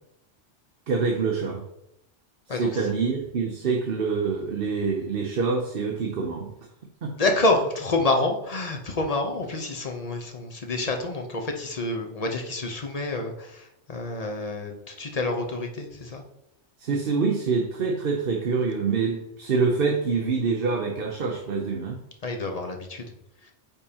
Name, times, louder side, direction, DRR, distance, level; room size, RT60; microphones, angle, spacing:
voice 1, 0.9-1.6 2.6-6.5 7.0-7.1 16.8-22.0, right 4 dB, 55° right, 1 dB, 0.9 m, -26 dB
voice 2, 2.5-2.8 7.1-16.2 22.2-23.0 23.4-23.5, left 2 dB, 35° left, 3 dB, 0.9 m, -28 dB
8.7 x 5.3 x 2.9 m, 0.81 s
omnidirectional pair, 1.2 m